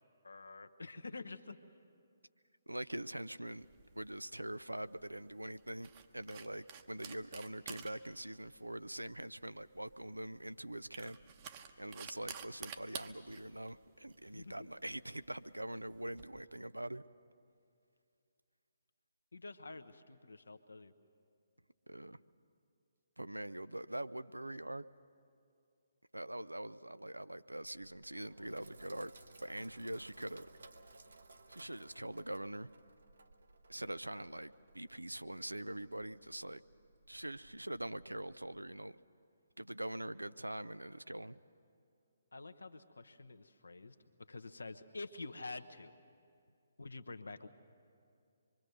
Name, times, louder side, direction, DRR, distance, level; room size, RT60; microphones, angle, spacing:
voice 1, 0.2-1.6 14.3-14.7 19.3-20.9 29.9-30.0 42.3-43.9 44.3-45.9 46.8-47.5, left 3 dB, 70° left, 8 dB, 1.0 m, -48 dB
voice 2, 2.7-3.7 4.0-11.2 11.8-17.0 21.9-22.2 23.2-24.9 26.1-29.1 29.4-30.5 31.5-32.7 33.7-36.6 37.1-39.0 39.6-41.4, right 1 dB, 85° right, 15 dB, 0.5 m, -43 dB
sound 1, 3.6-16.2, right 7 dB, 30° right, 1.0 m, -52 dB
Sink (filling or washing), 27.6-38.6, right 2 dB, 65° right, 1.2 m, -60 dB
25.0 x 23.0 x 6.7 m, 2.5 s
figure-of-eight pair, 135°, 0 cm